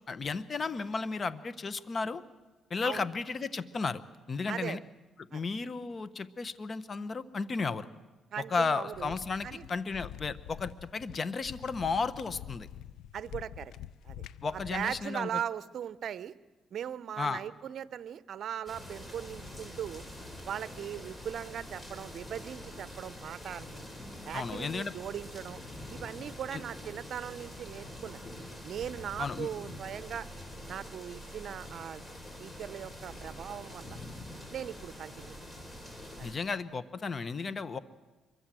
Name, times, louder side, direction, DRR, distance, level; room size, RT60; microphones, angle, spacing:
voice 1, 0.1-2.2 2.7-4.0 4.3-4.8 5.3-7.9 8.5-12.7 14.4-15.3 17.2-17.4 24.3-24.9 26.5-26.6 29.2-29.5 36.2-37.8, left 4 dB, 40° left, 14 dB, 1.2 m, -34 dB
voice 2, 4.5-4.8 5.3-5.5 8.3-9.1 9.4-9.7 13.1-13.7 14.0-14.2 14.5-16.3 16.7-20.0 20.5-23.8 24.2-25.6 25.9-28.2 28.6-30.3 30.7-32.0 32.4-34.0 34.5-35.3 36.2-36.3, right 9 dB, 65° right, 16 dB, 0.7 m, -39 dB
sound 1, 8.9-15.1, left 10 dB, 80° left, 0.7 m, -46 dB
sound 2, 18.7-36.3, left 1 dB, 20° left, 4.7 m, -45 dB
25.0 x 23.0 x 7.7 m, 1.2 s
cardioid pair, 90°, 0 cm